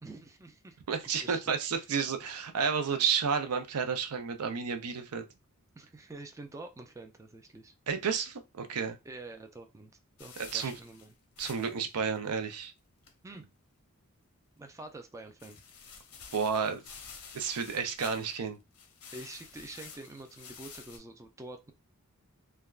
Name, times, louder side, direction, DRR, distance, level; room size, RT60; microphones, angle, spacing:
voice 1, 0.0-0.8 1.1-1.6 5.8-7.7 9.0-9.9 10.2-11.1 13.2-13.5 14.6-15.6 19.1-21.7, right 2 dB, 15° right, 0.3 m, -47 dB
voice 2, 0.9-5.2 7.9-9.0 10.5-10.7 11.4-12.7 16.3-16.8 17.3-18.6, right 6 dB, 85° right, 0.5 m, -31 dB
sound 1, 10.2-11.9 12.1-12.2 12.6-12.7 13.0-13.1 15.4-18.5 18.7-21.0, left 6 dB, 85° left, 0.8 m, -50 dB
3.3 x 2.2 x 2.3 m
head